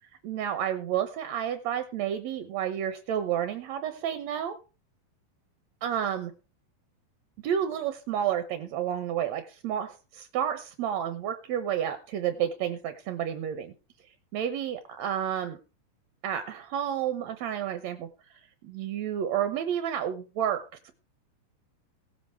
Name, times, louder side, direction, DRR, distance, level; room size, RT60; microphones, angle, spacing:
voice 1, 0.2-4.6 5.8-6.3 7.4-13.7 14.3-15.6 16.2-18.1 18.6-20.9, right 9 dB, 70° right, 9 dB, 1.9 m, -30 dB
17.5 x 7.9 x 4.5 m, 0.32 s
omnidirectional pair, 3.9 m